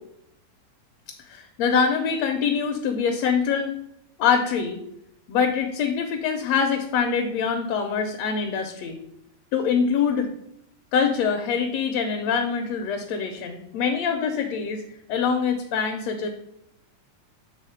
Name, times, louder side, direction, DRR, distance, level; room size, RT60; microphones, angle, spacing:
voice 1, 1.2-3.7 4.2-4.8 5.3-9.0 9.5-10.3 10.9-14.8 15.1-16.3, left 6 dB, 75° left, 4 dB, 1.7 m, -24 dB
7.3 x 3.5 x 5.6 m, 0.80 s
omnidirectional pair, 3.4 m